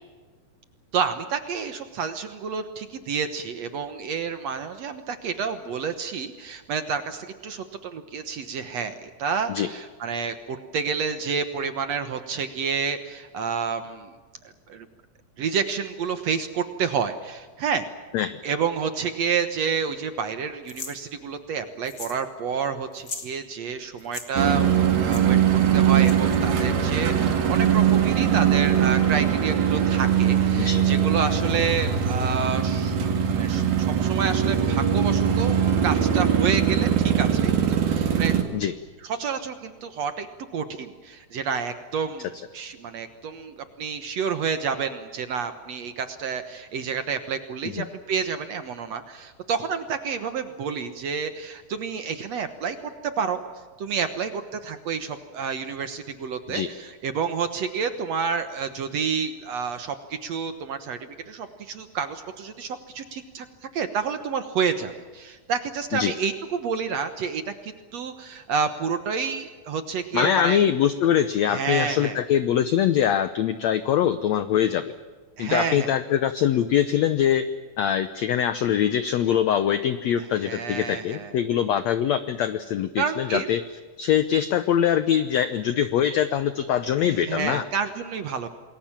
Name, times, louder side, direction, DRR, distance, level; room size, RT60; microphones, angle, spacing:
voice 1, 0.9-14.1 14.7-14.9 15.4-17.8 18.4-25.4 25.7-33.0 33.3-38.3 39.0-40.3 40.5-42.3 42.5-53.4 53.8-63.5 63.7-70.6 71.5-72.2 75.4-75.9 80.5-81.4 83.0-83.5 87.0-88.5, right 6 dB, 60° right, 9 dB, 1.9 m, -29 dB
sound 1, 20.7-21.0 21.9-22.2 22.5-22.6 22.9-23.3 24.0-24.3 25.1-25.2 26.0-26.4, left 4 dB, 35° left, 2.8 m, -37 dB
sound 2, 24.4-38.4, right 8 dB, 80° right, 4.3 m, -21 dB
voice 2, 70.1-74.8 75.4-77.4 77.8-83.6 84.0-87.6, left 9 dB, 85° left, 12 dB, 1.5 m, -23 dB
28.0 x 21.0 x 7.4 m, 1.4 s
omnidirectional pair, 4.2 m